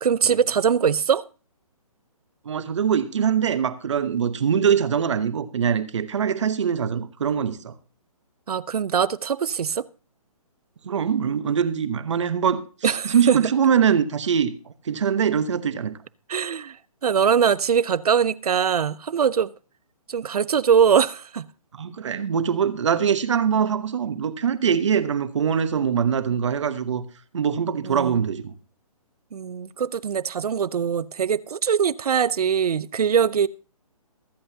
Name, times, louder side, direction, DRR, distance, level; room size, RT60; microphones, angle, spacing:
voice 1, 0.0-1.2 8.5-9.8 12.8-13.4 16.3-16.8 17.0-19.5 20.1-21.5 27.8-28.2 29.3-33.5, right 7 dB, 90° right, 0.6 m, -22 dB
voice 2, 2.4-7.7 10.8-12.6 12.9-14.5 14.8-15.9 21.7-27.0 27.3-28.5, right 7 dB, 50° right, 1.0 m, -23 dB
23.0 x 7.8 x 2.8 m
hypercardioid pair, 170°, 19 cm